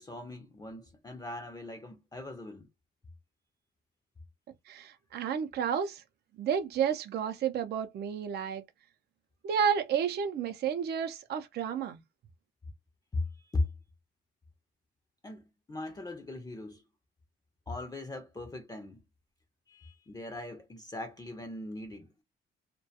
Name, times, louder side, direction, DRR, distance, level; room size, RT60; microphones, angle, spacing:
voice 1, 0.0-2.7 13.1-13.7 15.2-16.8 17.7-19.0 19.7-22.1, left 2 dB, 20° left, 0.5 m, -39 dB
voice 2, 4.7-6.0 6.4-8.6 9.4-12.0, right 8 dB, 55° right, 0.5 m, -31 dB
2.2 x 2.2 x 2.7 m
cardioid pair, 90°, 20 cm